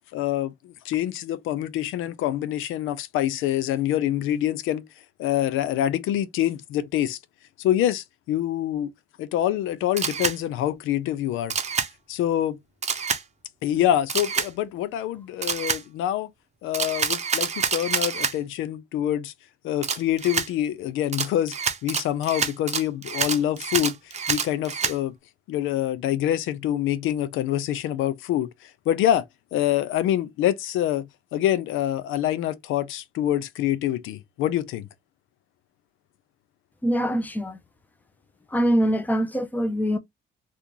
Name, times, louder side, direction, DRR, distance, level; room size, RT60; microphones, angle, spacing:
voice 1, 0.1-4.8 5.2-7.2 7.6-8.9 9.2-11.5 12.1-12.6 13.6-16.3 16.6-19.3 19.6-23.9 24.3-25.1 25.5-29.3 29.5-34.9, left 12 dB, 90° left, 0.5 m, -26 dB
Camera, 10.0-10.4 11.5-11.9 12.8-13.2 14.1-14.5 15.4-15.8 16.7-18.3 19.8-20.5 21.1-25.0, right 6 dB, 35° right, 0.7 m, -27 dB
voice 2, 36.8-37.6 38.5-40.0, equal, 10° left, 0.6 m, -23 dB
2.8 x 2.5 x 3.7 m
cardioid pair, 90°, 20 cm